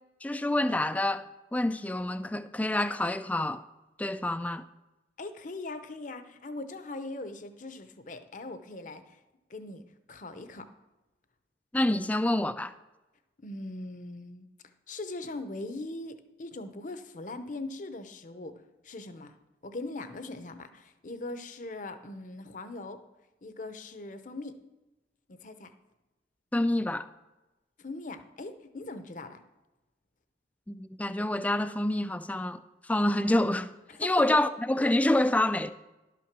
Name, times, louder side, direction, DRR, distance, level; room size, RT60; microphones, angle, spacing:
voice 1, 0.2-1.2 1.5-3.6 4.0-4.6 11.7-12.7 26.5-27.1 30.7-32.6 32.9-33.7 34.0-35.7, left 1 dB, 10° left, 0.3 m, -27 dB
voice 2, 5.2-9.2 9.5-10.7 13.4-14.5 14.9-19.3 19.6-23.0 23.4-24.5 25.3-25.7 27.8-29.4 33.9-34.4, left 2 dB, 45° left, 0.8 m, -40 dB
12.0 x 5.9 x 6.0 m
head